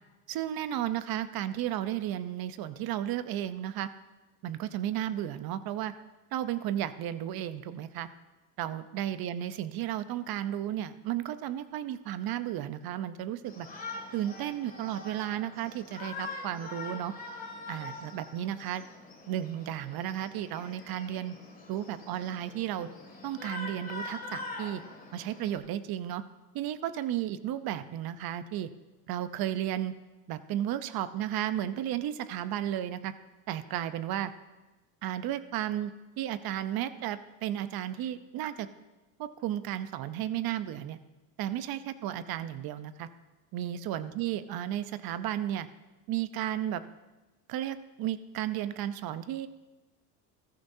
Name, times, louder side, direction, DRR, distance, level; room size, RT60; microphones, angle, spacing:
voice 1, 0.3-3.9 4.4-5.9 6.3-8.1 8.6-13.7 14.1-17.1 17.7-18.8 19.3-21.3 21.7-22.9 23.2-24.8 25.1-26.2 26.5-28.7 29.1-29.9 30.3-33.1 33.5-34.3 35.0-38.7 39.2-41.0 41.4-43.1 43.5-45.7 46.1-46.8 47.5-49.5, right 11 dB, 55° right, 13 dB, 0.8 m, -33 dB
Shout, 13.4-25.6, left 3 dB, 20° left, 2.4 m, -43 dB
14.0 x 14.0 x 2.7 m, 1.1 s
supercardioid pair, 100°, 43 cm